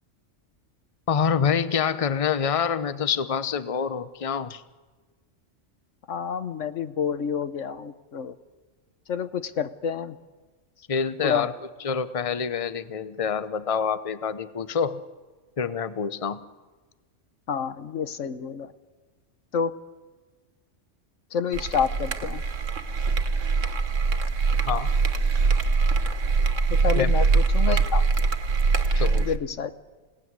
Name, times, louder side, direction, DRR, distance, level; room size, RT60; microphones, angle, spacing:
voice 1, 1.1-4.6 10.9-11.5 11.8-15.0 15.6-16.4 24.6-24.9 26.9-27.1 28.9-29.3, left 6 dB, 30° left, 14 dB, 0.9 m, -26 dB
voice 2, 6.1-8.3 9.1-10.2 11.2-11.5 17.5-18.7 19.5-19.7 21.3-22.4 26.7-28.0 29.2-29.7, left 6 dB, 80° left, 12 dB, 1.4 m, -28 dB
sound 1, 21.5-29.4, right 4 dB, 85° right, 1.6 m, -23 dB
27.5 x 17.5 x 9.6 m, 1.3 s
omnidirectional pair, 1.3 m